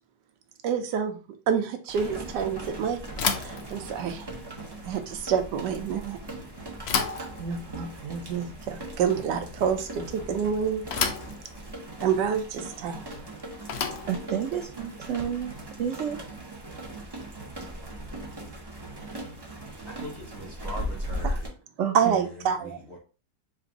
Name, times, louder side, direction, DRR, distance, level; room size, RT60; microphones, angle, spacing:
voice 1, 0.6-1.2 1.5-3.0 3.3-4.4 4.9-6.2 7.2-10.8 12.0-13.1 21.2-21.4 21.9-22.8, right 7 dB, 90° right, 1.3 m, -28 dB
sound 1, 1.9-21.5, right 1 dB, 35° right, 0.4 m, -39 dB
Bicycle / Thump thud, 3.1-16.2, left 6 dB, 75° left, 0.5 m, -35 dB
voice 2, 14.1-15.5 15.8-16.2 21.8-22.1, right 8 dB, 70° right, 0.7 m, -30 dB
voice 3, 19.9-21.5 22.2-23.0, left 1 dB, 35° left, 0.8 m, -41 dB
3.9 x 2.6 x 3.9 m
omnidirectional pair, 1.8 m